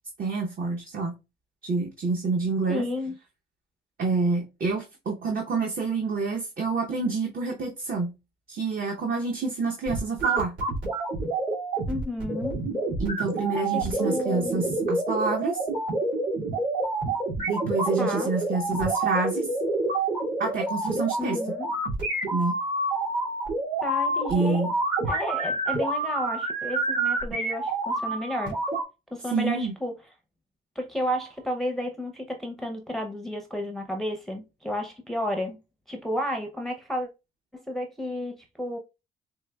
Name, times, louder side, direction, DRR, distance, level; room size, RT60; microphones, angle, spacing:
voice 1, 0.2-1.2 1.6-2.8 4.0-8.1 8.5-10.6 13.0-15.6 17.5-19.5 20.4-21.4 22.3-22.6 24.3-24.7 29.3-29.7, right 4 dB, 45° right, 0.8 m, -28 dB
voice 2, 2.7-3.2 11.9-12.6 13.7-14.6 18.0-18.3 21.2-21.7 23.8-24.6 25.0-28.6 29.1-29.9 30.8-35.6 35.9-37.1 37.5-38.8, equal, ahead, 0.6 m, -32 dB
sound 1, 9.9-28.8, right 2 dB, 75° right, 2.3 m, -28 dB
4.6 x 2.6 x 2.3 m
cardioid pair, 90°, 20 cm